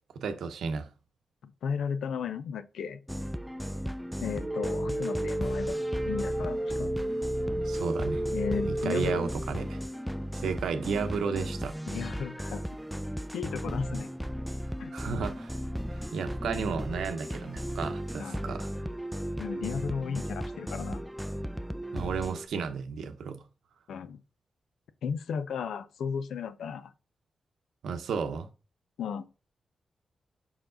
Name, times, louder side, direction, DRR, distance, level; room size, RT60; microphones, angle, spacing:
voice 1, 0.1-0.9 7.7-8.2 8.6-9.8 10.3-11.8 14.9-15.5 16.1-18.7 21.9-23.4 27.8-28.5, right 6 dB, 90° right, 0.8 m, -33 dB
voice 2, 1.4-3.0 4.2-5.8 6.0-6.9 8.3-9.2 11.9-12.7 13.3-14.1 14.8-14.9 18.2-18.5 19.4-21.0 23.9-24.2 25.0-26.9 29.0-29.3, left 7 dB, 85° left, 0.5 m, -35 dB
sound 1, 3.1-22.5, equal, 5° right, 0.4 m, -36 dB
sound 2, 4.4-9.4, right 1 dB, 40° right, 1.0 m, -32 dB
5.9 x 4.6 x 3.8 m
cardioid pair, 60°, 0 cm